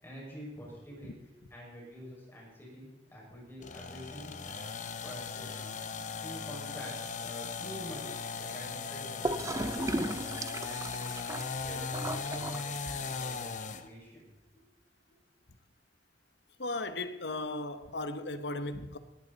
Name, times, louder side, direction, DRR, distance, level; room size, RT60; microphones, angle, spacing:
voice 1, 0.0-1.1 1.5-5.7 6.2-11.1 11.6-14.3, equal, 15° left, 5.8 m, -47 dB
sound 1, 3.6-13.9, left 5 dB, 45° left, 0.8 m, -38 dB
Gurgling / Toilet flush, 9.2-13.2, right 1 dB, 15° right, 0.6 m, -36 dB
voice 2, 16.6-19.0, left 2 dB, 65° left, 1.0 m, -36 dB
18.0 x 13.5 x 4.1 m
head